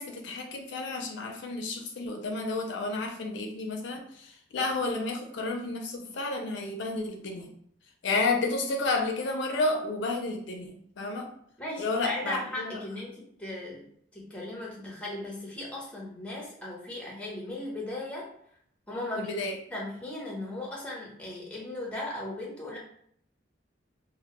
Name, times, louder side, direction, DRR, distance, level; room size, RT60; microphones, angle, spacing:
voice 1, 0.0-7.5 8.0-11.3 11.8-12.7 19.1-19.6, left 3 dB, 70° left, 3 dB, 0.4 m, -31 dB
voice 2, 11.6-18.3 18.9-19.3 19.7-22.8, left 1 dB, 5° left, -3 dB, 0.6 m, -37 dB
2.1 x 2.0 x 2.9 m, 0.66 s
head